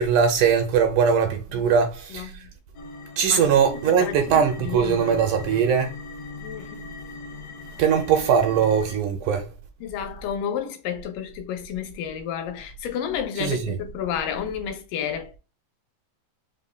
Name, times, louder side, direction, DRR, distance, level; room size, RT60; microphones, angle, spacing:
voice 1, 0.0-2.3 3.2-5.9 7.8-9.5 13.4-13.8, right 7 dB, 80° right, 2.0 m, -21 dB
voice 2, 2.1-2.5 3.3-5.3 6.4-6.9 9.8-15.4, left 8 dB, 80° left, 2.3 m, -32 dB
sound 1, 2.7-9.0, left 4 dB, 60° left, 2.1 m, -40 dB
5.4 x 3.3 x 2.2 m
omnidirectional pair, 3.9 m